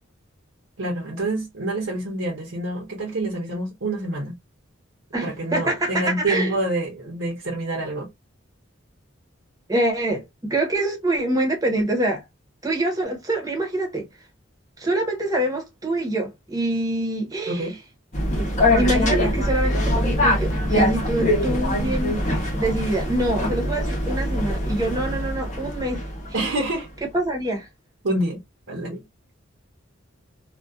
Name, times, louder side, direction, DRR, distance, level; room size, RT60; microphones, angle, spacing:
voice 1, 0.8-4.3 5.2-8.1 17.5-17.8 26.3-26.9 28.0-28.4 28.7-29.0, right 1 dB, 70° right, 0.8 m, -27 dB
voice 2, 5.1-6.5 9.7-12.2 12.6-14.1 14.8-17.7 18.3-18.5 18.8-22.2 22.5-26.0 26.4-26.5 27.1-27.7, right 1 dB, 20° right, 0.8 m, -25 dB
sound 1, 18.1-26.4, left 1 dB, 40° left, 0.8 m, -23 dB
2.5 x 2.2 x 2.2 m
head